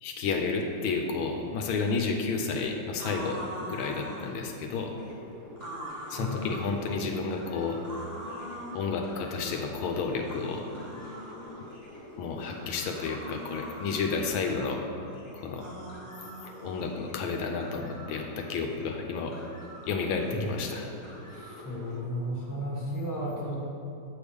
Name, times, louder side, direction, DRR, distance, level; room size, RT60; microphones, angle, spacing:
voice 1, 0.0-3.4 3.7-4.9 6.1-7.8 8.7-10.7 12.2-14.9 15.3-15.7 16.6-19.4 19.9-20.9, left 4 dB, 80° left, 3 dB, 1.4 m, -31 dB
sound 1, 3.0-4.4 5.6-6.7 7.8-8.9 10.2-11.6 13.0-14.2 15.6-16.9, equal, 60° right, 0.6 m, -41 dB
sound 2, 5.0-22.0, left 1 dB, 35° left, 0.7 m, -48 dB
voice 2, 21.3-23.6, equal, 10° left, -5 dB, 1.1 m, -33 dB
8.2 x 6.3 x 3.5 m, 2.6 s
omnidirectional pair, 2.3 m